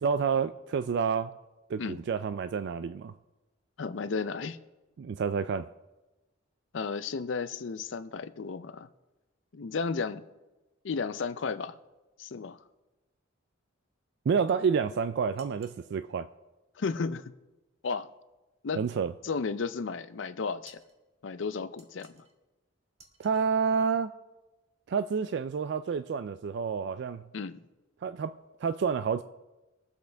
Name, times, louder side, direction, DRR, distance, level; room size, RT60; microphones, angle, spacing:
voice 1, 0.0-1.3 1.7-3.1 5.0-5.7 14.3-16.3 18.8-19.1 23.2-24.1 24.9-27.3 28.0-29.2, right 6 dB, 60° right, 0.3 m, -29 dB
voice 2, 3.8-4.6 6.7-8.9 9.5-10.2 10.8-11.8 12.2-12.6 16.8-17.3 17.8-18.1 18.6-18.8 19.2-20.8 21.2-22.3 27.3-27.6, left 4 dB, 70° left, 0.5 m, -33 dB
sound 1, 15.4-15.8 20.6-21.0 21.8-22.4 23.0-23.5, right 3 dB, 35° right, 1.7 m, -57 dB
22.0 x 7.9 x 3.4 m
head